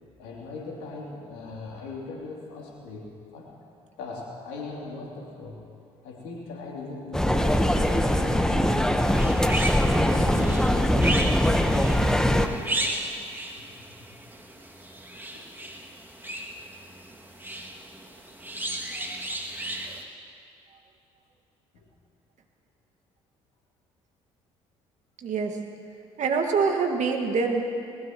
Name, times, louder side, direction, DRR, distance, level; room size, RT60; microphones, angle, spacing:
voice 1, 0.2-3.5 4.0-5.6 6.0-9.3 9.8-12.9 15.3-15.4 21.7-21.8, left 3 dB, 80° left, -3 dB, 3.1 m, -39 dB
sound 1, 7.1-12.5, equal, 5° left, 1.2 m, -22 dB
sound 2, 9.0-20.0, right 1 dB, 15° right, 2.3 m, -35 dB
voice 2, 25.2-25.6 26.2-27.6, right 5 dB, 55° right, 3 dB, 1.9 m, -25 dB
20.5 x 20.0 x 3.1 m, 2.4 s
hypercardioid pair, 45°, 14 cm